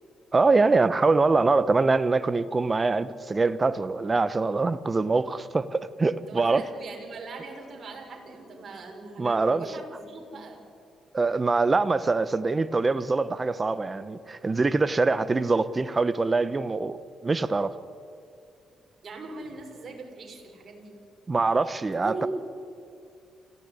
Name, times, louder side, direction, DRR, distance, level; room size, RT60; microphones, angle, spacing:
voice 1, 0.3-6.6 9.2-9.6 11.1-17.0 17.2-17.8 21.3-22.3, right 3 dB, 25° right, 1.2 m, -24 dB
voice 2, 6.3-10.6 19.0-21.0 21.8-22.3, right 3 dB, 45° right, 6.4 m, -40 dB
29.0 x 16.0 x 9.9 m
cardioid pair, 90°, 0 cm